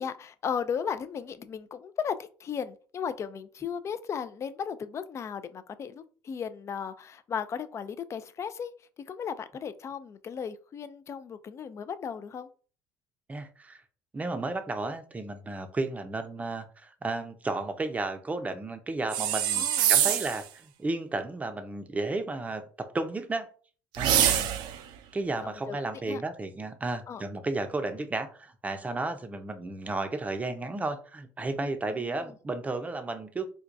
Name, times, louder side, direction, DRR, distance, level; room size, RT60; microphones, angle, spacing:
voice 1, 0.0-8.7 9.1-12.5 19.6-20.1 24.2-24.4 25.4-25.8 26.0-26.2 27.1-27.3 31.9-32.3, left 7 dB, 35° left, 0.3 m, -36 dB
voice 2, 13.3-13.8 14.1-23.5 24.0-24.3 25.1-33.5, right 2 dB, 20° right, 0.5 m, -33 dB
sound 1, 19.1-20.4 23.9-24.8, right 10 dB, 70° right, 0.4 m, -24 dB
4.4 x 2.2 x 2.5 m
cardioid pair, 105°, 8 cm